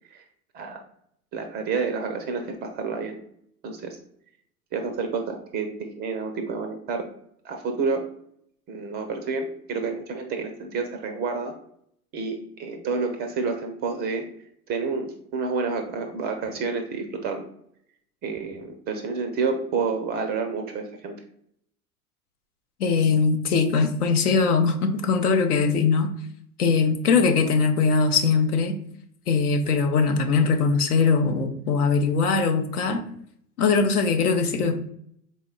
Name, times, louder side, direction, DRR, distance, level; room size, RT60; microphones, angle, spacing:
voice 1, 1.3-3.2 3.6-4.0 4.7-7.1 7.4-8.0 8.7-11.5 12.1-14.2 14.7-17.5 18.2-21.2, right 4 dB, 25° right, 5 dB, 0.3 m, -29 dB
voice 2, 22.8-26.1 26.6-28.8 29.3-33.0 33.6-34.7, left 5 dB, 80° left, 5 dB, 0.7 m, -21 dB
4.0 x 2.1 x 3.7 m, 0.67 s
hypercardioid pair, 85°, 45 cm